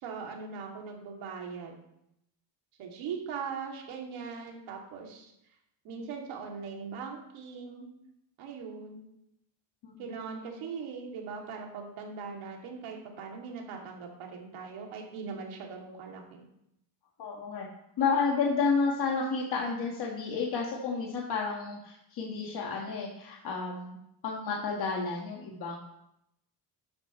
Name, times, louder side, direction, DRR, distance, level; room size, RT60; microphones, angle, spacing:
voice 1, 0.0-1.8 2.8-5.3 5.8-7.9 8.4-9.0 10.0-16.4, right 5 dB, 85° right, 0 dB, 2.6 m, -40 dB
voice 2, 17.2-17.7 18.0-24.0 24.2-25.8, left 4 dB, 50° left, -2 dB, 1.7 m, -31 dB
12.5 x 9.6 x 3.1 m, 0.80 s
cardioid pair, 175°, 48 cm